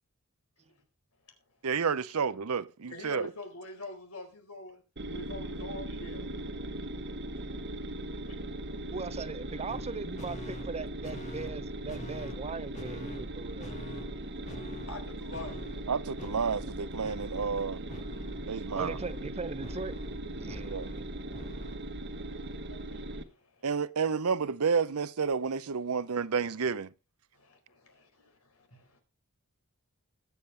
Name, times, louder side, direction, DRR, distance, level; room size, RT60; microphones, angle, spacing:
voice 1, 1.6-3.3 15.9-17.8 18.5-19.0 20.7-20.9 23.6-26.9, right 5 dB, 80° right, 0.7 m, -30 dB
voice 2, 2.8-4.8 5.1-6.3 14.9-15.7 22.5-23.7 27.3-29.0, left 2 dB, 80° left, 4.5 m, -45 dB
sound 1, 5.0-23.2, right 1 dB, 55° right, 1.3 m, -39 dB
voice 3, 8.9-13.7 18.7-20.0 20.3-21.0, right 4 dB, 30° right, 0.6 m, -39 dB
sound 2, 9.7-9.9 10.2-10.7 11.0-11.6 11.9-12.5 12.7-13.3 13.6-14.2 14.5-15.0 15.3-15.9 16.2-16.8 17.0-17.6 17.9-21.8, equal, 35° left, 1.8 m, -44 dB
21.0 x 7.3 x 3.4 m
head